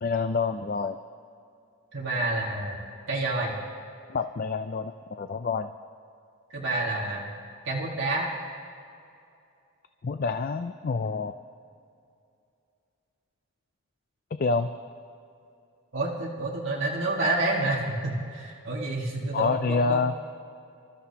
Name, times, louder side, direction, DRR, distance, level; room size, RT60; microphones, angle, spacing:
voice 1, 0.0-1.0 4.1-5.7 10.0-11.3 14.4-14.7 19.3-20.1, left 4 dB, 40° left, 9 dB, 0.3 m, -27 dB
voice 2, 1.9-3.5 6.5-7.3 7.7-8.3 15.9-20.0, right 2 dB, 55° right, -4 dB, 1.8 m, -29 dB
27.5 x 13.0 x 2.9 m, 2.5 s
head